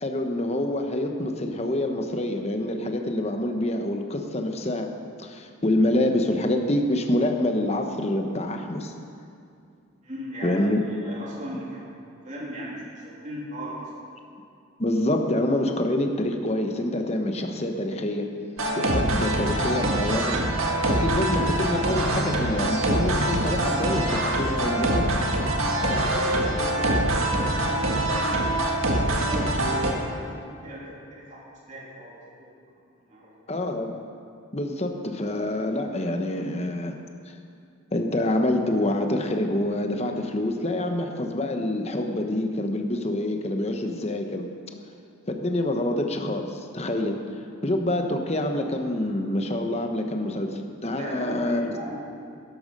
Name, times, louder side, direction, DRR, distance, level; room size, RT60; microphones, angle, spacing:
voice 1, 0.0-4.9 5.2-8.9 10.4-10.8 14.8-18.3 18.8-20.4 20.9-25.2 33.5-33.9 34.5-37.0 37.9-44.5 45.3-47.3 47.6-51.7, left 1 dB, 30° left, 4 dB, 1.0 m, -26 dB
voice 2, 10.0-11.9 12.2-13.9 25.7-31.4 31.7-32.5 33.1-33.3 51.0-52.0, equal, 35° right, -5 dB, 3.0 m, -38 dB
sound 1, 18.6-29.9, right 1 dB, 85° right, 1.6 m, -24 dB
12.5 x 11.5 x 5.4 m, 2.5 s
head